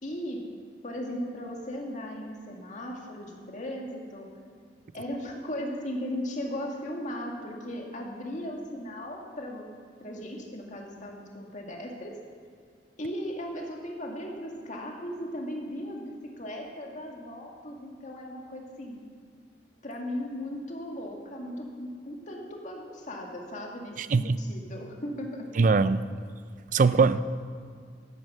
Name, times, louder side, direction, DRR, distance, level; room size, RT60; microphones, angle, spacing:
voice 1, 0.0-0.4 0.8-4.3 4.9-9.7 10.0-12.1 13.0-19.0 19.8-25.4, equal, 45° left, 1 dB, 1.9 m, -37 dB
voice 2, 24.0-24.4 25.6-26.0 26.7-27.2, right 4 dB, 45° right, 14 dB, 0.4 m, -21 dB
12.5 x 9.6 x 6.2 m, 2.1 s
head